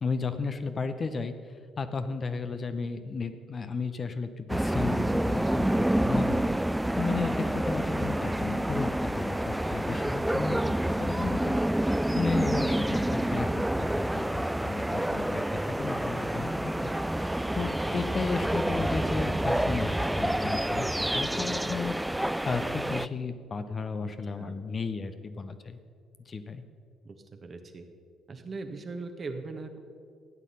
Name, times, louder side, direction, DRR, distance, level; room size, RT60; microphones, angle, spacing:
voice 1, 0.0-1.3 1.8-6.4 7.0-10.6 11.0-11.6 12.1-16.9 17.5-21.9 22.4-25.8 26.3-26.6, left 4 dB, 40° left, 9 dB, 0.8 m, -34 dB
sound 1, 4.5-23.1, right 1 dB, 5° right, 0.3 m, -28 dB
voice 2, 24.0-24.5 27.0-27.8 28.3-29.8, right 3 dB, 40° right, 6 dB, 1.4 m, -40 dB
14.0 x 9.3 x 5.6 m, 2.3 s
hypercardioid pair, 45°, 0 cm